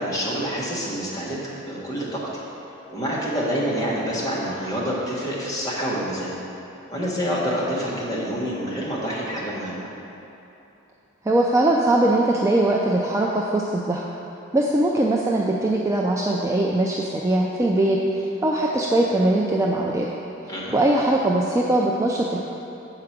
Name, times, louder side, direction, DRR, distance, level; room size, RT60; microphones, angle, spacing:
voice 1, 0.0-1.4 1.7-2.4 2.9-6.3 6.9-9.9 20.5-20.8, equal, 15° left, -7 dB, 1.4 m, -27 dB
voice 2, 11.3-14.0 14.5-20.1 20.7-22.4, right 1 dB, 15° right, -2 dB, 0.3 m, -21 dB
7.8 x 4.9 x 5.8 m, 3.0 s
head